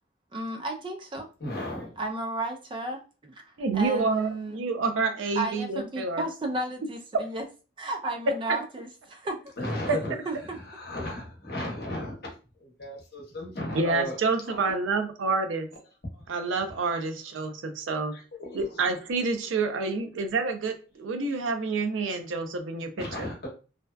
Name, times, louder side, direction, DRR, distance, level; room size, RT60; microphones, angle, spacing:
voice 1, 0.3-1.3 2.0-4.7 5.4-7.4 7.8-9.5 9.9-10.0 10.3-10.6, right 2 dB, 25° right, 4 dB, 0.3 m, -33 dB
voice 2, 1.4-2.0 9.6-10.1 10.7-12.3 12.6-14.2 14.5-14.7 18.1-18.6 23.0-23.5, left 1 dB, 55° left, 0 dB, 0.8 m, -35 dB
voice 3, 3.6-6.3 9.9-10.0 13.7-15.7 16.3-18.2 18.5-23.1, right 4 dB, 90° right, 6 dB, 0.5 m, -28 dB
2.6 x 2.2 x 2.2 m, 0.34 s
head